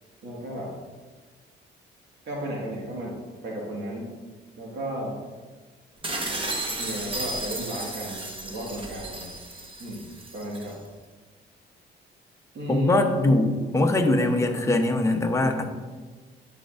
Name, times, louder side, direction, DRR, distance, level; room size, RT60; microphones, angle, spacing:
voice 1, 0.2-0.7 2.3-4.1 4.6-5.2 6.8-9.4 9.8-10.1 10.3-10.8 12.5-13.1, right 1 dB, 60° right, -3 dB, 1.9 m, -33 dB
sound 1, 6.0-10.7, right 2 dB, 25° right, 1.2 m, -33 dB
voice 2, 12.7-15.6, left 2 dB, 15° left, 4 dB, 0.9 m, -22 dB
11.0 x 5.2 x 2.6 m, 1.4 s
cardioid pair, 90°, 20 cm